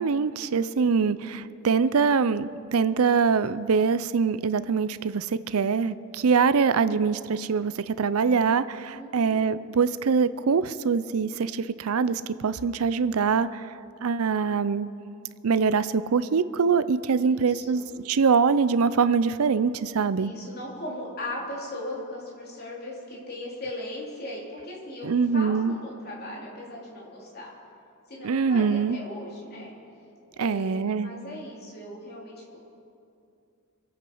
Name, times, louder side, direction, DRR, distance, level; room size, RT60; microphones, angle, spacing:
voice 1, 0.0-13.7 14.0-14.9 15.4-20.3 25.0-25.7 28.2-29.0 30.4-31.1, right 5 dB, 80° right, 14 dB, 0.5 m, -24 dB
voice 2, 8.9-9.4 17.1-17.8 20.2-27.5 28.1-29.7 30.4-32.6, left 1 dB, 45° left, -4 dB, 3.5 m, -38 dB
25.5 x 8.8 x 5.5 m, 2.6 s
head